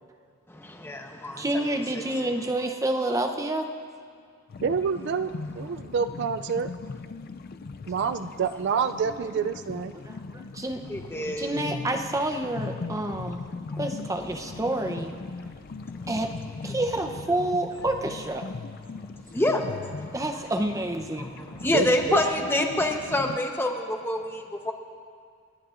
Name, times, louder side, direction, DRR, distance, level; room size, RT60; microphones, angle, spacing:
voice 1, 0.5-1.6 1.9-2.3 10.9-11.7 19.3-19.6 21.2-24.7, left 1 dB, 10° left, 2 dB, 0.9 m, -27 dB
voice 2, 1.4-3.7 9.9-10.8 11.4-13.4 13.8-15.2 16.1-16.3 16.6-18.5 20.1-21.3, right 1 dB, 15° right, 5 dB, 0.7 m, -28 dB
sound 1, 4.5-23.4, left 3 dB, 45° left, 0.4 m, -39 dB
voice 3, 4.6-6.7 7.9-9.9 21.7-22.2, right 6 dB, 55° right, 10 dB, 0.3 m, -27 dB
30.0 x 11.0 x 2.5 m, 2.1 s
head